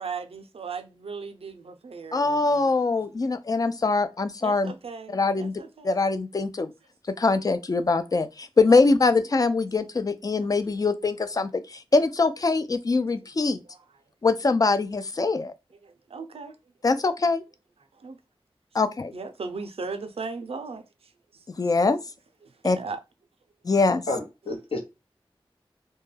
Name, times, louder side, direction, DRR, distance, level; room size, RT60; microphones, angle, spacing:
voice 1, 0.0-2.7 4.4-5.9 8.7-8.8 13.7-13.8 15.8-16.6 18.0-18.2 19.1-20.8 21.3-21.7 22.4-23.0, right 4 dB, 85° right, 0.4 m, -37 dB
voice 2, 2.1-4.7 5.1-5.5 5.8-6.7 7.2-13.6 14.2-15.5 16.8-17.4 18.7-19.1 21.6-22.0 22.6-22.8 23.7-24.0, left 3 dB, 40° left, 0.3 m, -23 dB
voice 3, 24.1-24.8, left 2 dB, 75° left, 0.7 m, -30 dB
2.2 x 2.1 x 3.1 m
wide cardioid pair, 60°, 10 cm